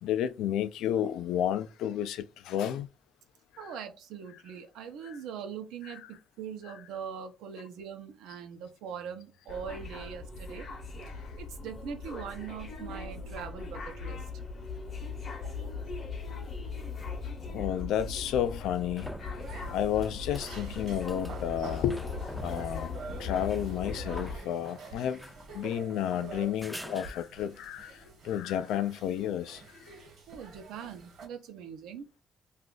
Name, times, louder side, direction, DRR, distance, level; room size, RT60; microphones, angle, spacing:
voice 1, 0.0-2.9 3.6-3.7 17.5-19.1 19.7-22.0 22.4-22.9 23.2-25.2 25.5-27.9 28.2-29.6, left 10 dB, 85° left, 0.3 m, -31 dB
voice 2, 3.6-10.7 11.1-14.2 15.3-15.7 30.3-32.2, right 7 dB, 90° right, 0.6 m, -42 dB
sound 1, 9.5-24.4, left 4 dB, 40° left, 0.8 m, -39 dB
sound 2, 18.5-27.6 31.0-31.1, equal, ahead, 0.4 m, -48 dB
sound 3, 19.4-31.3, right 4 dB, 65° right, 1.1 m, -48 dB
2.4 x 2.4 x 3.7 m
cardioid pair, 120°, 0 cm